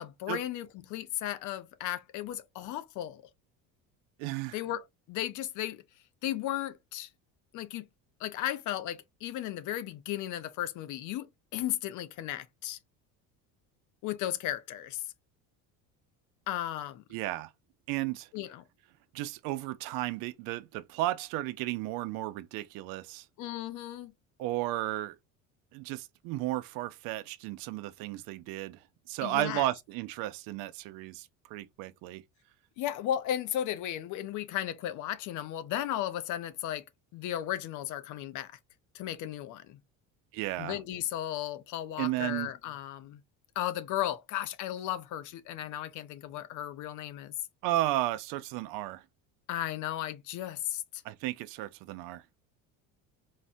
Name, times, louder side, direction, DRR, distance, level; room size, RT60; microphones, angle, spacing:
voice 1, 0.0-3.2 4.5-5.8 6.2-7.1 7.5-7.8 8.2-12.8 14.0-15.0 16.5-17.0 18.3-18.6 23.4-24.1 29.2-29.7 32.8-36.8 37.1-38.5 38.9-39.8 40.6-43.2 43.6-47.3 49.5-51.0, left 12 dB, 60° left, 0.6 m, -35 dB
voice 2, 4.2-4.6 17.1-17.5 17.9-18.3 19.1-23.3 24.4-25.2 25.7-32.2 40.3-40.8 42.0-42.5 47.6-49.0 51.0-52.2, right 16 dB, 75° right, 0.5 m, -34 dB
4.0 x 2.1 x 2.5 m
cardioid pair, 120°, 35 cm